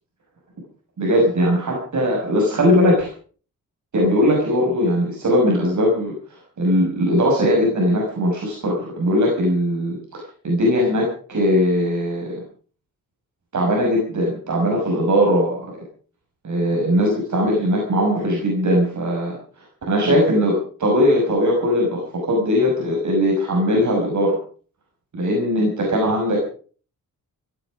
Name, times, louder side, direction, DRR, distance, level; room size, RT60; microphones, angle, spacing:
voice 1, 1.0-3.1 3.9-12.4 13.5-15.7 16.4-24.4 25.1-26.4, equal, 55° right, -1 dB, 6.1 m, -20 dB
17.0 x 15.5 x 5.1 m, 0.43 s
wide cardioid pair, 120°, 34 cm